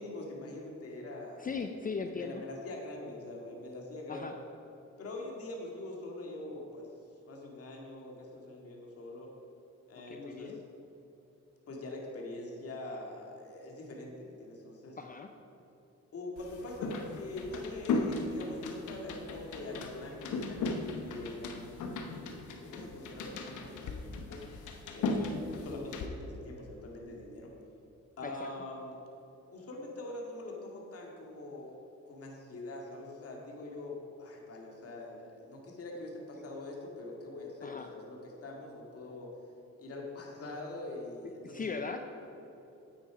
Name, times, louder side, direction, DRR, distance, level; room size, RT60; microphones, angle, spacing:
voice 1, 0.0-1.5 2.1-4.3 5.0-6.9 7.3-9.3 9.9-10.6 11.7-15.0 16.1-24.4 24.9-27.5 28.2-28.9 29.5-31.8 32.1-39.3 39.8-41.7, left 2 dB, 50° left, -1 dB, 2.1 m, -43 dB
voice 2, 1.4-2.4 4.1-4.4 10.1-10.6 15.0-15.3 25.1-25.4 28.2-28.5 35.9-36.0 37.6-37.9 41.4-42.0, left 4 dB, 30° left, 5 dB, 0.6 m, -39 dB
sound 1, 16.4-26.1, left 3 dB, 80° left, 1.1 m, -37 dB
9.1 x 8.7 x 5.0 m, 3.0 s
cardioid pair, 90°, 30 cm